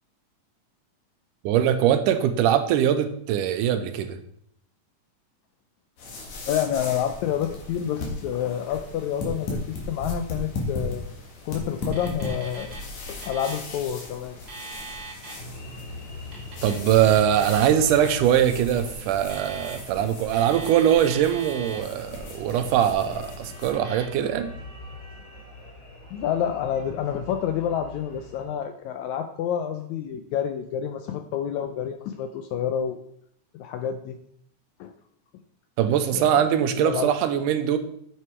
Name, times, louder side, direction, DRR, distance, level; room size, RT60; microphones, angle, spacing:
voice 1, 1.4-4.2 16.6-24.6 35.8-37.8, right 10 dB, 80° right, 9 dB, 2.1 m, -22 dB
sound 1, 6.0-23.7, left 3 dB, 60° left, 2.8 m, -37 dB
voice 2, 6.5-11.0 11.4-12.7 13.1-14.4 26.1-33.0 33.5-34.2 34.8-34.9 36.1-36.2 36.8-37.1, left 9 dB, 85° left, 7 dB, 1.7 m, -28 dB
Alarm, 11.8-12.8 13.1-13.7 14.3-15.4 16.2-17.7 18.0-18.4 19.1-20.0 20.3-21.9 22.4-22.9 23.7-24.0, right 4 dB, 55° right, 1.0 m, -41 dB
sound 2, 15.3-28.4, left 1 dB, 30° left, 2.8 m, -43 dB
8.2 x 5.8 x 4.6 m, 0.69 s
omnidirectional pair, 3.8 m